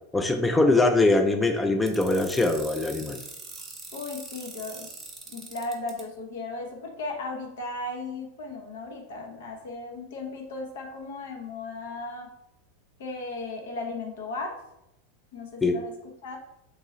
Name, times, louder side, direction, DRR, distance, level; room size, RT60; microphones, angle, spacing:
voice 1, 0.1-3.2 15.6-15.8, left 2 dB, 10° left, 5 dB, 0.3 m, -22 dB
sound 1, 1.9-6.0, right 4 dB, 25° right, 1.0 m, -42 dB
voice 2, 3.9-4.9 5.3-12.3 13.0-14.5 15.3-15.9 16.2-16.4, left 3 dB, 75° left, 1 dB, 0.8 m, -36 dB
2.9 x 2.7 x 3.7 m, 0.83 s
hypercardioid pair, 110°, 0 cm